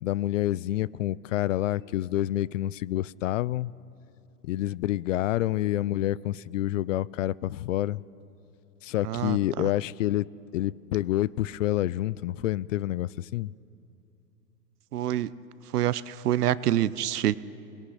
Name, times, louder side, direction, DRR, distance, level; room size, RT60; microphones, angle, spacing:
voice 1, 0.0-3.7 4.4-8.0 8.8-10.2 10.5-13.5, left 14 dB, 55° left, 0.5 m, -28 dB
voice 2, 9.0-9.4 14.9-15.3 15.7-17.4, right 12 dB, 75° right, 0.8 m, -26 dB
27.0 x 20.5 x 5.8 m
hypercardioid pair, 130°, 47 cm